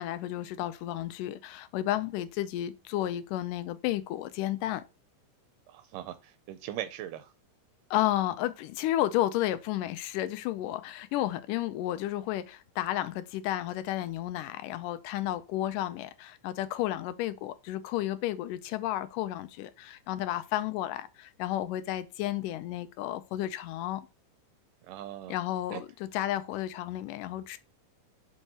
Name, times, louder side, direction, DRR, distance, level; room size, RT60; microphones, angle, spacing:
voice 1, 0.0-4.8 7.9-24.0 25.3-27.6, left 14 dB, 80° left, 2.2 m, -32 dB
voice 2, 5.7-7.3 24.9-25.3 25.7-25.8, right 12 dB, 85° right, 2.2 m, -40 dB
7.8 x 5.5 x 2.9 m
omnidirectional pair, 3.8 m